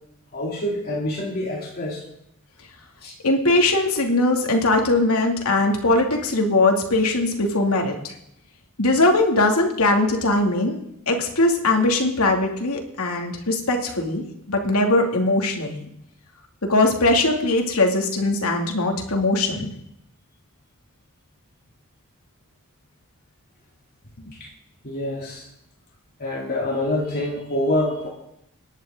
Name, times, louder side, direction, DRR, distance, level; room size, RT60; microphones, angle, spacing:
voice 1, 0.3-2.0 3.0-3.1 24.4-24.5 24.8-25.5 26.2-28.1, left 1 dB, 45° left, -3 dB, 3.0 m, -26 dB
voice 2, 3.2-8.1 8.8-10.8 11.1-15.8 16.7-19.7 24.2-24.3, left 2 dB, 90° left, 2 dB, 2.6 m, -20 dB
26.5 x 11.0 x 3.9 m, 0.80 s
head